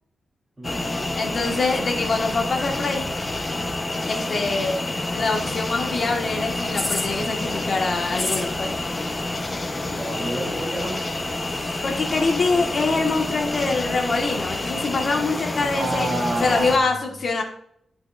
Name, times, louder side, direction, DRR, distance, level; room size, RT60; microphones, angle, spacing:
sound 1, 0.6-16.8, left 2 dB, 25° left, 0.7 m, -28 dB
voice 1, 0.6-1.3 9.8-11.0 15.7-16.8, right 1 dB, 10° right, -6 dB, 2.8 m, -29 dB
voice 2, 1.1-3.1 4.0-4.8 5.1-8.7 11.8-16.1 16.4-17.4, left 3 dB, 50° left, 1 dB, 1.3 m, -24 dB
11.0 x 6.1 x 2.4 m, 0.67 s
wide cardioid pair, 120°, 0 cm